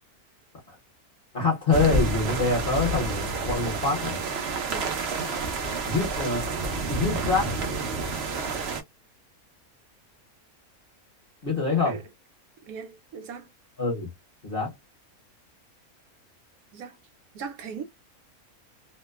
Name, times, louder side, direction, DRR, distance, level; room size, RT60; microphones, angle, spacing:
voice 1, 1.3-4.2 5.7-6.5 6.9-7.5 11.4-12.0 13.8-14.1 14.4-14.7, left 3 dB, 45° left, 1.0 m, -25 dB
sound 1, 1.7-8.8, right 3 dB, 55° right, 0.8 m, -29 dB
voice 2, 12.7-13.5 16.7-17.0 17.3-17.8, right 6 dB, 75° right, 1.1 m, -38 dB
2.9 x 2.1 x 2.2 m
omnidirectional pair, 1.5 m